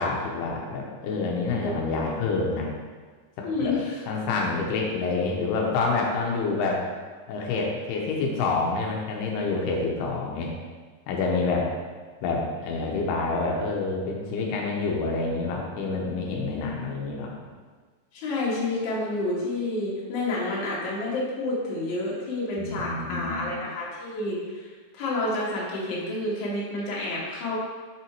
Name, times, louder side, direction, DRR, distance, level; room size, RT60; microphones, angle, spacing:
voice 1, 0.0-2.7 3.4-3.7 4.1-6.8 7.3-10.5 11.1-11.7 12.2-17.4 22.6-23.6, left 3 dB, 90° left, -1 dB, 2.8 m, -27 dB
voice 2, 1.6-2.1 3.4-4.0 18.1-27.6, left 2 dB, 55° left, -6 dB, 2.8 m, -29 dB
6.5 x 5.9 x 4.6 m, 1.5 s
omnidirectional pair, 4.5 m